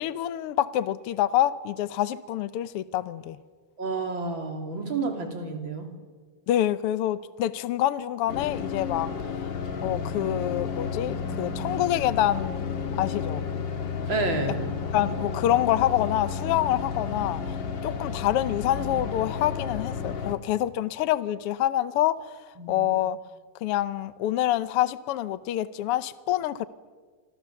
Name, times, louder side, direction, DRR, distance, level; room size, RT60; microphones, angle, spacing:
voice 1, 0.0-3.4 6.5-9.1 9.8-13.4 14.9-17.6 17.8-22.3 22.7-23.2 23.6-26.7, left 12 dB, 75° left, 14 dB, 1.3 m, -26 dB
voice 2, 3.8-5.9 14.1-14.7 22.6-22.9, right 3 dB, 40° right, 4 dB, 3.4 m, -30 dB
sound 1, 8.3-20.3, left 5 dB, 45° left, 1.8 m, -32 dB
26.5 x 26.5 x 7.0 m, 1.5 s
omnidirectional pair, 3.7 m